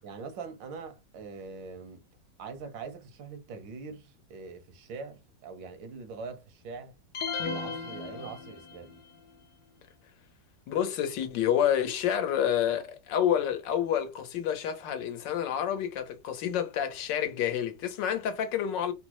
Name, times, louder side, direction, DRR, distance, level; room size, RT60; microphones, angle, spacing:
voice 1, 0.0-2.0 2.4-6.9 7.5-9.0, right 4 dB, 85° right, 1.6 m, -43 dB
sound 1, 7.1-9.0, left 5 dB, 65° left, 1.0 m, -35 dB
voice 2, 10.7-18.9, left 9 dB, 80° left, 1.5 m, -28 dB
4.1 x 2.0 x 3.0 m
omnidirectional pair, 1.9 m